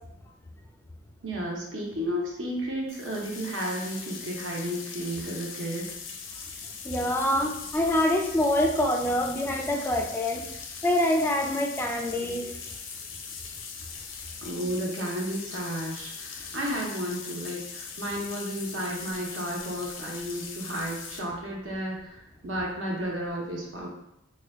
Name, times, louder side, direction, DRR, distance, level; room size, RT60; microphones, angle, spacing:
voice 1, 1.2-5.9 14.4-23.9, equal, 70° right, -2 dB, 0.8 m, -32 dB
sound 1, 2.9-21.2, left 6 dB, 80° left, 0.5 m, -40 dB
voice 2, 6.8-10.5 10.8-12.5, left 1 dB, 10° left, 2 dB, 0.3 m, -25 dB
3.3 x 2.2 x 3.5 m, 0.81 s
head